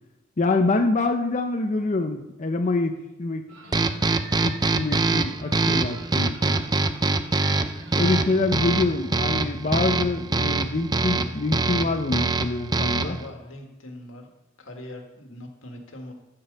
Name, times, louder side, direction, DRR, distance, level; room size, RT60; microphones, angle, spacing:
voice 1, 0.4-3.5 4.4-6.6 7.9-13.2, left 3 dB, 35° left, 4 dB, 0.6 m, -25 dB
sound 1, 3.5-8.7, right 2 dB, 70° right, 2.3 m, -45 dB
sound 2, 3.7-13.3, right 3 dB, 20° right, 0.4 m, -24 dB
voice 2, 6.4-6.8 12.9-14.3 14.6-16.1, left 1 dB, 85° left, 3 dB, 1.8 m, -41 dB
15.0 x 5.3 x 5.4 m, 1.0 s
head